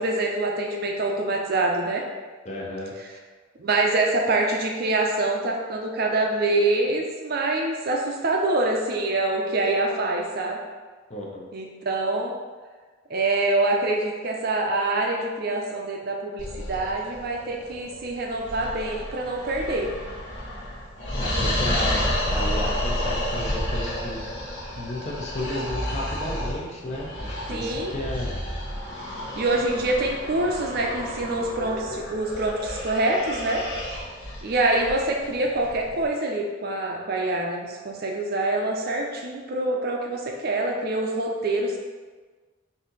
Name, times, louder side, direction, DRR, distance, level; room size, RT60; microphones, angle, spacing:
voice 1, 0.0-2.0 3.6-10.6 11.5-12.4 13.1-19.9 27.5-27.9 29.4-33.6 34.4-41.8, right 2 dB, 45° right, 1 dB, 0.5 m, -25 dB
voice 2, 2.4-2.9 11.1-11.5 21.2-24.3 24.8-28.3, left 1 dB, 30° left, -2 dB, 0.6 m, -33 dB
sound 1, 16.4-36.0, left 1 dB, 60° left, 1.0 m, -31 dB
4.2 x 2.7 x 3.9 m, 1.4 s
head